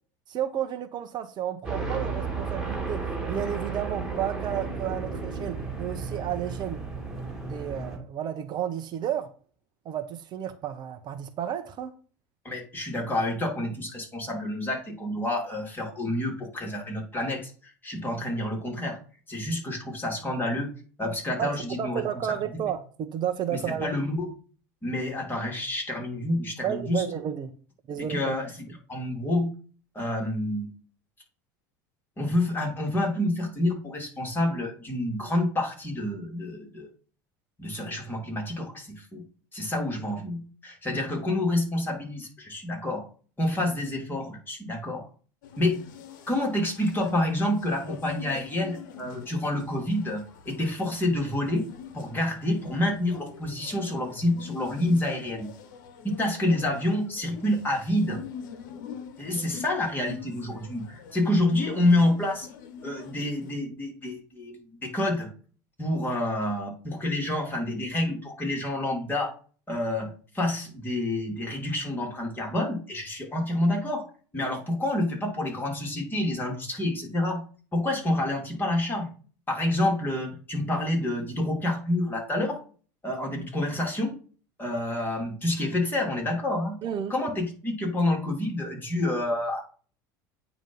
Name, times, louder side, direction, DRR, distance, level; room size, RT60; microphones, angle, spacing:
voice 1, 0.3-3.0 3.3-6.8 7.4-9.3 9.8-11.9 21.4-23.9 26.6-27.5 27.9-28.4 86.8-87.1, right 10 dB, 45° right, 0.8 m, -32 dB
sound 1, 1.6-8.0, right 4 dB, 5° right, 2.5 m, -33 dB
voice 2, 12.4-19.0 19.3-20.7 21.0-22.0 23.5-24.3 24.8-27.0 28.0-28.5 28.9-29.5 29.9-30.7 32.2-36.9 37.6-39.2 39.5-43.1 43.4-45.0 45.6-45.8 46.3-51.7 51.9-55.5 56.0-58.2 59.2-62.5 62.8-65.3 65.8-69.3 69.7-74.0 74.3-77.4 77.7-79.1 79.5-82.6 83.0-84.1 84.6-86.8 87.1-89.6, left 1 dB, 20° left, 2.9 m, -28 dB
sound 2, 45.4-63.5, left 7 dB, 80° left, 1.1 m, -45 dB
8.9 x 3.0 x 5.4 m
supercardioid pair, 100°, 10 cm